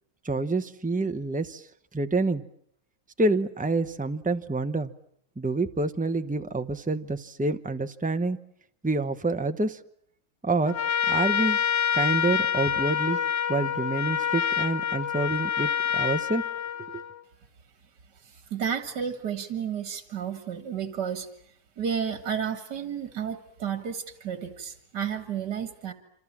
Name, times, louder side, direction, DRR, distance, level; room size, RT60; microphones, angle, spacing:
voice 1, 0.2-1.7 1.9-2.4 3.2-4.9 5.4-8.4 8.8-9.8 10.4-10.8 11.1-11.6 11.9-13.2 13.5-16.4 16.9-17.0, right 2 dB, 5° right, 8 dB, 0.7 m, -27 dB
Trumpet, 10.7-17.2, left 8 dB, 75° left, 2.4 m, -27 dB
voice 2, 18.2-21.3 21.8-25.9, right 7 dB, 80° right, 9 dB, 2.3 m, -32 dB
27.0 x 26.5 x 7.3 m, 0.69 s
omnidirectional pair, 1.8 m